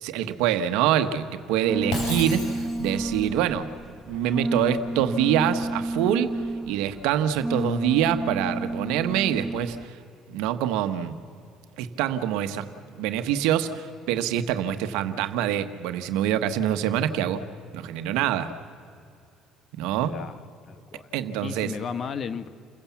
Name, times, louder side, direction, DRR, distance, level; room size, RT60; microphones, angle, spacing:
voice 1, 0.0-3.7 4.1-6.4 6.6-9.9 10.3-11.1 11.8-12.7 13.0-17.4 17.7-18.5 19.8-20.2 21.1-21.7, right 10 dB, 85° right, 9 dB, 1.1 m, -25 dB
sound 1, 1.7-9.9, right 2 dB, 5° right, 0.5 m, -30 dB
Shatter, 1.9-3.1, left 2 dB, 70° left, 5.9 m, -33 dB
voice 2, 20.7-21.1 21.4-22.5, left 6 dB, 45° left, 13 dB, 1.1 m, -34 dB
28.5 x 16.0 x 7.3 m, 2.4 s
cardioid pair, 105°, 0 cm